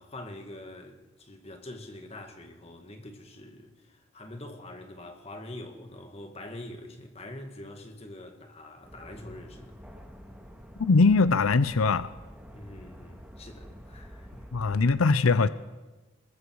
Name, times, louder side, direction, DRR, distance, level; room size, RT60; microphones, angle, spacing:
voice 1, 0.0-9.8 12.5-14.5, left 1 dB, 30° left, 2.2 m, -44 dB
sound 1, 8.8-14.9, equal, 5° right, 1.8 m, -48 dB
voice 2, 10.8-12.1 14.5-15.5, left 4 dB, 90° left, 0.6 m, -21 dB
25.5 x 22.0 x 4.8 m
head